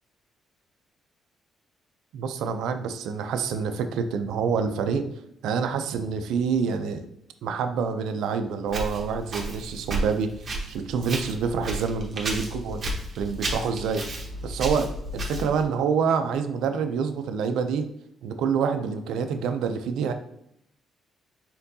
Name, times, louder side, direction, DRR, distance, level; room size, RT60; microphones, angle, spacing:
voice 1, 2.1-5.0 5.4-7.1 7.4-10.3 10.7-12.8 13.2-14.0 14.4-14.9 15.1-17.8 18.2-20.1, right 6 dB, 85° right, 8 dB, 0.4 m, -27 dB
Walk footsteps, 8.7-15.7, right 1 dB, 40° right, 1.1 m, -33 dB
4.4 x 3.7 x 2.7 m, 0.75 s
cardioid pair, 95°, 0 cm